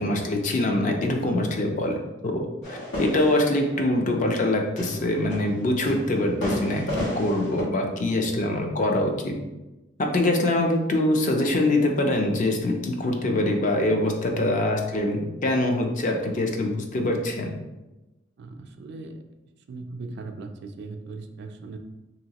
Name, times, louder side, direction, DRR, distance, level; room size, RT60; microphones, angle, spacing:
voice 1, 0.0-2.0 2.2-6.8 7.2-9.3 10.0-17.5, left 1 dB, 40° left, 2 dB, 0.4 m, -24 dB
sound 1, 2.6-7.6, left 1 dB, 90° left, 1.4 m, -32 dB
voice 2, 14.3-14.6 18.4-19.1 19.7-21.8, right 3 dB, 60° right, 6 dB, 0.3 m, -38 dB
2.8 x 2.8 x 2.8 m, 1.0 s
head